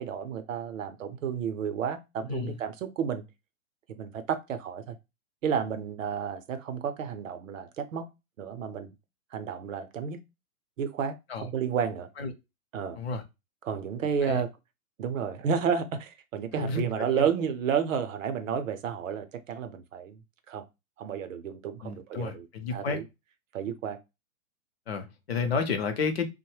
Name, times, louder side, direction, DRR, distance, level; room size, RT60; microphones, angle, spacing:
voice 1, 0.0-3.3 3.9-5.0 5.4-8.1 8.4-8.9 9.3-10.2 10.8-12.1 12.7-13.0 13.6-14.5 15.0-20.2 20.5-20.7 21.0-22.5 22.7-23.0 23.5-24.0, right 7 dB, 65° right, 0.6 m, -31 dB
voice 2, 2.3-2.6 11.3-11.5 12.2-12.3 12.9-13.2 14.2-14.4 16.5-17.3 21.8-23.0 24.9-26.3, left 4 dB, 50° left, 0.5 m, -31 dB
2.9 x 2.1 x 3.1 m
hypercardioid pair, 175°, 43 cm